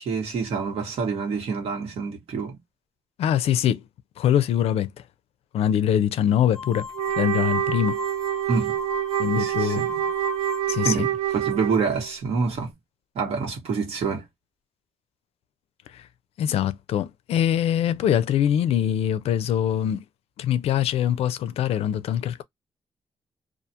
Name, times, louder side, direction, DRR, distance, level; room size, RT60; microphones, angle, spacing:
voice 1, 0.0-2.6 8.5-8.7 9.3-10.1 10.8-12.7 13.1-14.3, right 5 dB, 80° right, 1.3 m, -27 dB
voice 2, 3.2-3.8 4.2-4.9 5.5-6.9 7.2-8.0 9.2-9.8 10.7-11.1 15.9-16.0 16.4-20.0 20.4-22.4, left 10 dB, 75° left, 0.4 m, -23 dB
sound 1, 6.5-10.9, left 4 dB, 5° left, 0.4 m, -36 dB
Wind instrument woodwind instrument, 6.9-12.1, right 13 dB, 55° right, 1.1 m, -27 dB
2.4 x 2.3 x 2.7 m
wide cardioid pair, 175°, 10 cm